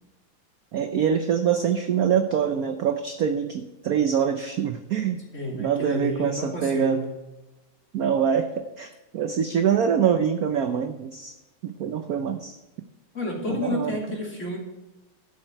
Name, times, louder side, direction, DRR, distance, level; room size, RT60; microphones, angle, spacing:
voice 1, 0.7-5.2 5.5-7.0 7.9-11.4 11.6-12.6 13.5-13.9, right 8 dB, 65° right, 7 dB, 0.9 m, -24 dB
voice 2, 5.3-7.1 13.1-14.6, left 1 dB, 35° left, -2 dB, 3.1 m, -30 dB
12.0 x 8.7 x 4.5 m, 1.0 s
omnidirectional pair, 2.3 m